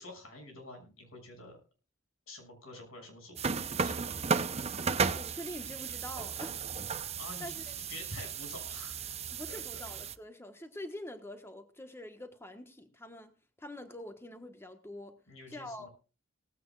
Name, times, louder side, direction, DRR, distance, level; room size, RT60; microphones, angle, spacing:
voice 1, 0.0-1.6 2.3-4.3 7.2-9.0 9.5-9.6 15.3-15.9, left 1 dB, 85° left, 7.0 m, -48 dB
sound 1, 3.4-10.2, right 5 dB, 30° right, 0.7 m, -34 dB
voice 2, 5.1-6.7 7.4-7.7 9.3-13.3 13.6-15.2 15.5-15.9, left 1 dB, 10° left, 1.3 m, -45 dB
18.5 x 15.5 x 2.4 m
head